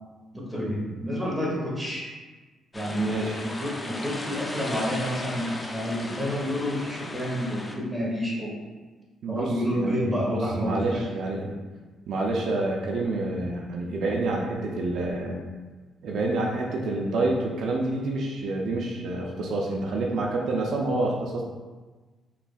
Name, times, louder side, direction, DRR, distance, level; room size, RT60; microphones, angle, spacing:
voice 1, 0.3-2.0 2.7-8.5 9.3-11.0, equal, 5° right, -5 dB, 1.2 m, -29 dB
sound 1, 2.7-7.8, left 1 dB, 20° left, 0.5 m, -36 dB
voice 2, 3.0-3.4 9.2-11.6 12.1-15.4 16.0-21.4, right 2 dB, 70° right, -1 dB, 0.5 m, -28 dB
4.3 x 3.1 x 2.4 m, 1.3 s
cardioid pair, 90°, 0 cm